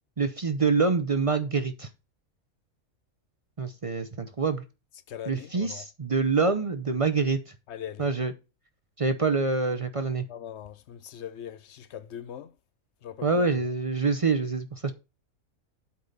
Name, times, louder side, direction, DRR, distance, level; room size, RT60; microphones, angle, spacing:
voice 1, 0.2-1.9 3.6-4.6 5.3-7.4 8.0-8.3 9.0-10.3 13.2-14.9, right 4 dB, 40° right, 0.5 m, -26 dB
voice 2, 5.1-5.8 7.7-8.1 10.3-12.5 13.0-13.5, left 10 dB, 60° left, 0.9 m, -40 dB
8.4 x 4.1 x 6.5 m
omnidirectional pair, 1.5 m